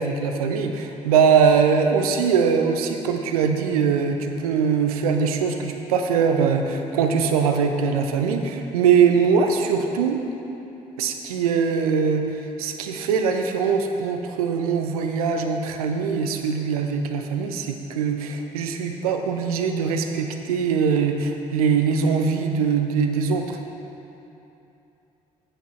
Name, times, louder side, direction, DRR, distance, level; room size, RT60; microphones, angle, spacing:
voice 1, 0.0-10.2 11.0-23.6, right 6 dB, 80° right, 5 dB, 0.6 m, -22 dB
8.9 x 8.0 x 4.3 m, 2.9 s
hypercardioid pair, 50°, 18 cm